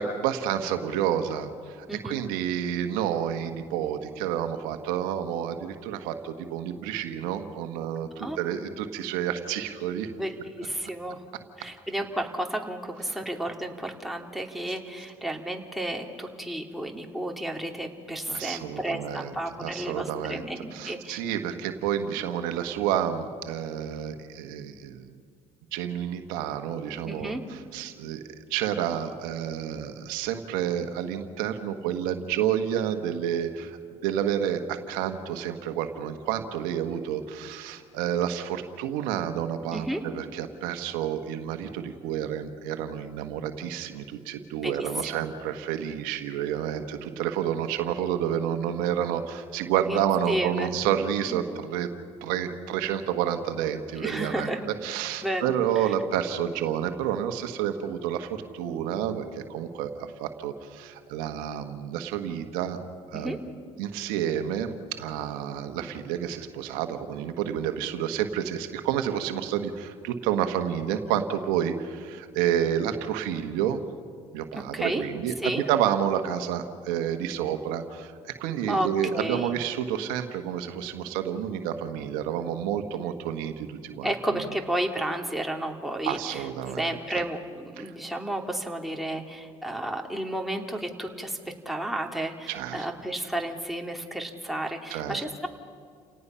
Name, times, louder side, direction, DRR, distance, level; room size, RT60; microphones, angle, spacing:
voice 1, 0.0-10.1 13.1-13.2 18.3-19.3 19.6-20.4 20.7-25.1 25.7-28.2 28.5-33.8 34.0-51.9 52.2-54.5 54.8-62.8 63.1-63.4 63.8-73.8 74.3-84.1 86.0-87.0 87.8-87.9 92.5-92.9 94.9-95.2, right 9 dB, 75° right, 7 dB, 1.4 m, -29 dB
voice 2, 10.2-11.2 11.6-21.2 26.9-27.4 39.7-40.0 44.6-45.2 49.9-50.7 51.3-51.6 53.9-54.7 55.2-55.5 55.8-55.9 63.1-63.4 74.5-75.0 75.4-75.6 78.7-79.5 84.0-95.5, right 1 dB, ahead, 1 dB, 2.8 m, -32 dB
29.5 x 18.0 x 5.7 m, 2.1 s
hypercardioid pair, 65°, 15 cm